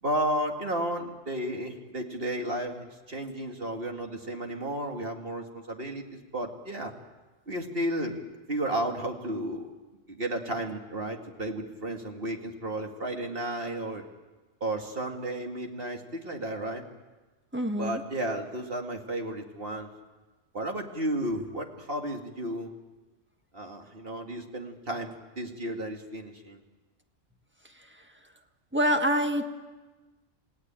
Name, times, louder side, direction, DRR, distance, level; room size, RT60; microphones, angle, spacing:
voice 1, 0.0-6.9 7.5-8.2 8.5-9.7 10.1-14.0 14.6-16.9 17.8-19.9 20.5-22.7 23.5-26.6, right 1 dB, 45° right, 3 dB, 2.4 m, -33 dB
voice 2, 17.5-18.0 27.6-28.0 28.7-29.4, equal, 10° right, 4 dB, 1.6 m, -27 dB
28.5 x 17.0 x 8.9 m, 1.2 s
omnidirectional pair, 1.4 m